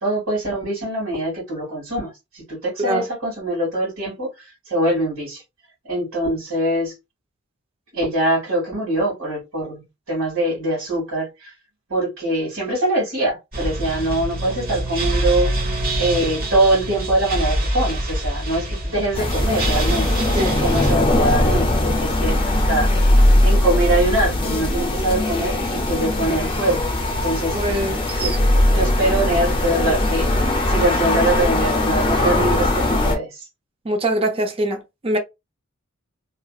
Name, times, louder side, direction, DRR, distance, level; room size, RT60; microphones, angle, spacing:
voice 1, 0.0-4.3 4.7-5.4 5.9-7.0 7.9-11.5 11.9-26.8 27.2-28.4 28.7-33.4, right 1 dB, 75° right, 1.9 m, -23 dB
sound 1, 13.5-20.9, right 1 dB, 45° right, 1.0 m, -25 dB
sound 2, 19.1-33.2, left 1 dB, 25° left, 0.6 m, -19 dB
voice 2, 27.5-28.4 32.5-32.6 33.8-35.2, right 1 dB, 25° right, 0.5 m, -23 dB
2.8 x 2.7 x 2.3 m
head